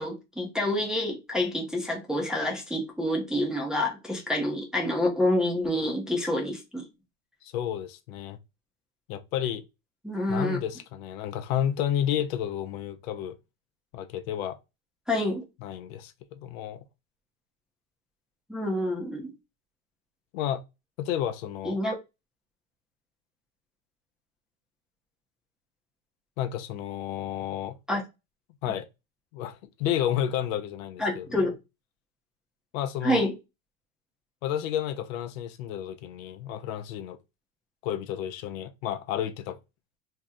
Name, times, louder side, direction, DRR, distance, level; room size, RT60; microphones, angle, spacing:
voice 1, 0.0-6.9 10.0-10.6 15.1-15.4 18.5-19.3 21.6-21.9 27.9-28.0 31.0-31.5 33.0-33.3, left 1 dB, ahead, 0.5 m, -27 dB
voice 2, 7.4-8.4 9.1-9.6 10.3-13.4 13.9-14.6 15.6-16.8 20.3-20.6 21.0-21.8 26.4-27.8 28.6-28.9 29.3-31.5 32.7-33.2 34.4-37.2 37.8-39.6, left 10 dB, 75° left, 0.6 m, -31 dB
2.8 x 2.0 x 3.5 m
supercardioid pair, 130°, 42 cm